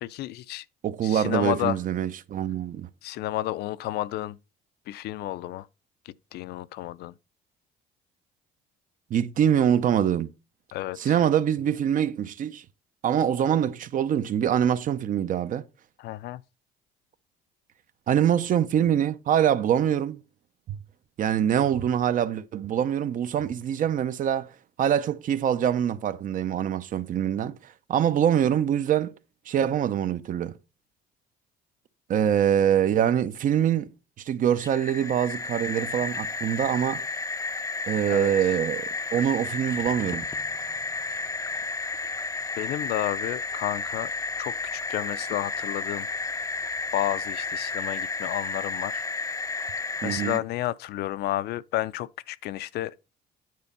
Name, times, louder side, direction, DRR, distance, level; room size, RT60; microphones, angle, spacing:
voice 1, 0.0-0.6 1.0-1.8 3.0-4.4 4.9-5.7 6.1-7.1 10.7-11.2 16.0-16.4 38.1-38.3 42.6-44.1 44.4-46.1 46.9-49.0 50.0-52.9, left 15 dB, 75° left, 0.5 m, -31 dB
voice 2, 0.8-2.9 9.1-10.3 11.0-12.6 13.0-15.6 18.1-20.2 20.7-20.8 21.2-24.5 24.8-29.1 29.5-30.6 32.1-37.0 37.9-40.3 50.0-50.4, right 9 dB, 50° right, 0.7 m, -24 dB
sound 1, 34.5-50.4, left 4 dB, 20° left, 0.5 m, -32 dB
9.6 x 4.4 x 5.4 m
cardioid pair, 110°, 17 cm